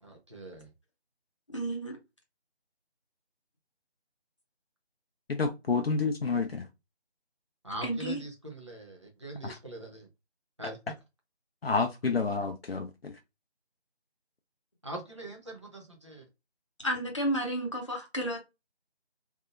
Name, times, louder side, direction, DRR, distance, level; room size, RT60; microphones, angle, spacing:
voice 1, 0.0-0.7 5.7-5.8 7.6-10.1 10.6-10.9 14.8-16.2, right 1 dB, 25° right, 0.6 m, -42 dB
voice 2, 1.5-1.9 7.8-8.2 16.8-18.4, right 1 dB, 30° left, 0.8 m, -31 dB
voice 3, 5.3-6.7 9.4-9.5 11.6-13.1, left 4 dB, 65° left, 0.5 m, -29 dB
3.5 x 2.6 x 2.4 m
figure-of-eight pair, 165°, 33 cm